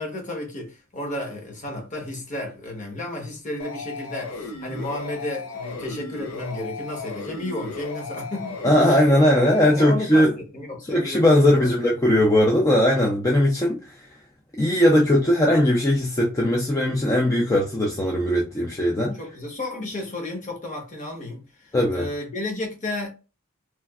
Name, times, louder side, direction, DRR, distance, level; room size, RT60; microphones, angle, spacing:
voice 1, 0.0-9.0 9.6-11.7 18.5-18.7 19.1-23.1, left 1 dB, 35° left, 1.0 m, -33 dB
sound 1, 3.6-9.9, left 3 dB, 85° left, 0.6 m, -35 dB
voice 2, 8.6-10.3 10.9-14.0 14.6-19.2 21.7-22.1, left 1 dB, 15° left, 0.4 m, -19 dB
3.2 x 2.4 x 2.3 m
head